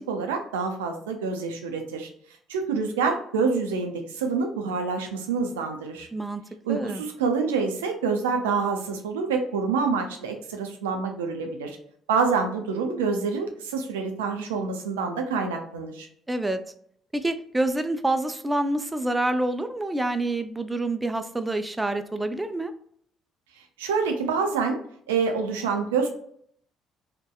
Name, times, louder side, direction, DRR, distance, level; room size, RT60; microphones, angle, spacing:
voice 1, 0.0-2.1 2.5-6.1 6.6-11.8 12.1-16.1 23.8-24.8 25.1-26.1, right 5 dB, 85° right, 4 dB, 0.4 m, -27 dB
voice 2, 6.7-7.0 16.3-16.6 17.1-22.7, right 2 dB, 15° right, 9 dB, 0.3 m, -27 dB
2.7 x 2.1 x 2.2 m, 0.64 s
hypercardioid pair, 50°, 0 cm